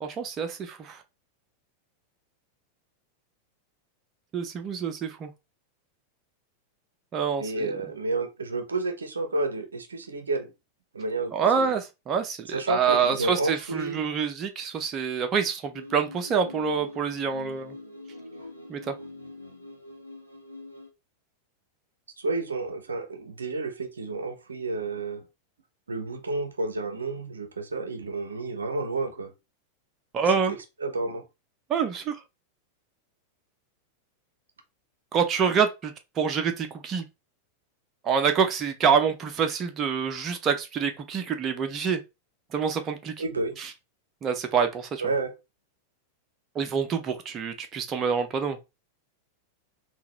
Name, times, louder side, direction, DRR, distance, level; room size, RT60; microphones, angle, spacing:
voice 1, 0.0-1.0 4.3-5.3 7.1-7.7 11.3-17.7 18.7-18.9 30.1-30.6 31.7-32.2 35.1-37.0 38.0-42.0 42.5-43.1 43.6-43.7 44.2-45.0 46.6-48.6, right 6 dB, 30° right, 0.5 m, -26 dB
voice 2, 7.4-10.5 10.9-11.7 12.5-14.0 22.2-25.2 25.9-29.3 30.5-31.2 43.2-43.6 45.0-45.3, right 3 dB, 75° right, 0.5 m, -30 dB
sound 1, 15.7-20.9, left 1 dB, 85° left, 0.7 m, -44 dB
3.8 x 2.2 x 2.9 m
figure-of-eight pair, 90°, 0 cm